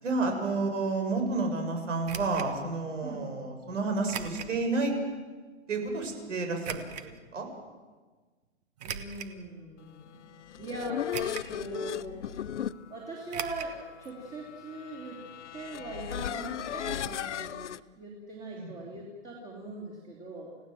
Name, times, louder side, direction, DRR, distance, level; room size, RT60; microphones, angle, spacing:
voice 1, 0.0-4.9 5.7-7.5 18.6-18.7, right 3 dB, 80° right, 4 dB, 6.9 m, -30 dB
sound 1, 2.0-2.5 4.1-4.6 5.1-5.2 6.6-7.1 8.8-9.4 10.0-10.1 11.1-11.6 11.9-12.0 13.3-13.8 14.0-14.1 14.4-14.5, right 8 dB, 35° right, 1.3 m, -38 dB
voice 2, 8.8-10.3 10.6-12.2 12.9-15.2 15.5-20.5, right 2 dB, 15° right, -1 dB, 3.0 m, -41 dB
sound 2, 10.3-17.8, left 10 dB, 75° left, 0.9 m, -37 dB
30.0 x 17.0 x 7.7 m, 1.4 s
hypercardioid pair, 170°, 36 cm